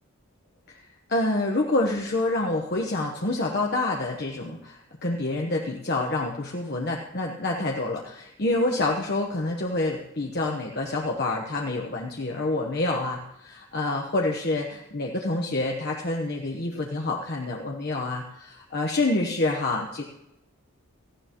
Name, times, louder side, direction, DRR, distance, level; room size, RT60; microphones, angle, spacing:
voice 1, 0.8-20.0, left 2 dB, 45° left, 0 dB, 1.1 m, -27 dB
18.0 x 15.0 x 3.0 m, 0.85 s
head